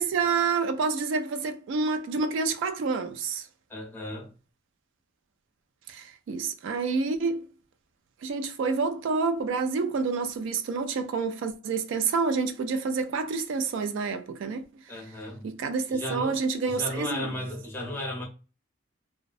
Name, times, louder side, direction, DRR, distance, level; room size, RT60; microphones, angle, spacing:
voice 1, 0.0-3.5 5.9-7.4 8.2-14.6 15.4-17.3, right 4 dB, 65° right, 0.3 m, -28 dB
voice 2, 3.7-4.3 14.9-15.5 15.9-16.4 16.7-18.2, left 1 dB, 10° left, 0.7 m, -35 dB
2.5 x 2.1 x 2.4 m
head